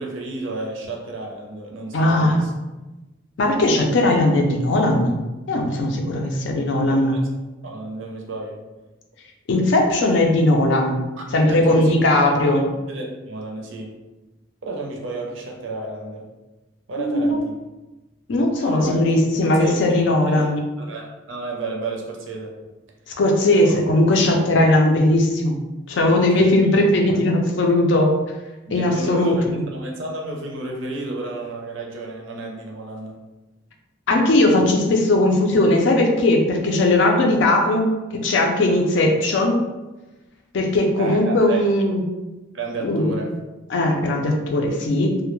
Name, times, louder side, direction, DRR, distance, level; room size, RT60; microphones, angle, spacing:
voice 1, 0.0-2.5 6.7-7.2 7.6-8.6 11.2-12.5 12.9-14.0 14.6-16.3 16.9-17.6 18.6-19.0 19.4-20.5 20.8-22.5 23.6-23.9 26.3-26.5 28.7-33.2 41.0-41.7 42.5-43.4, right 2 dB, 75° right, 0 dB, 0.5 m, -32 dB
voice 2, 1.9-2.4 3.4-5.1 5.5-7.2 9.5-11.0 11.3-12.6 17.0-17.4 18.3-20.6 23.1-25.6 25.9-28.1 28.7-29.6 34.1-39.6 40.5-42.0 42.8-43.2 43.7-45.2, left 1 dB, 65° left, 2 dB, 0.4 m, -18 dB
2.2 x 2.1 x 3.0 m, 1.1 s
head